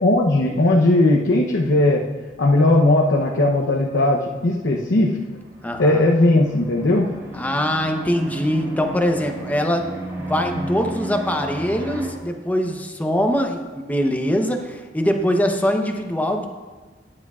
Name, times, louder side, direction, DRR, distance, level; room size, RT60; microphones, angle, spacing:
voice 1, 0.0-2.0 2.4-5.2 5.8-7.1, left 2 dB, 75° left, -1 dB, 0.8 m, -17 dB
sound 1, 4.8-12.1, right 1 dB, 15° right, 2.1 m, -33 dB
voice 2, 5.6-6.1 7.3-16.5, equal, 10° left, 4 dB, 0.8 m, -23 dB
13.5 x 9.7 x 2.4 m, 1.4 s
head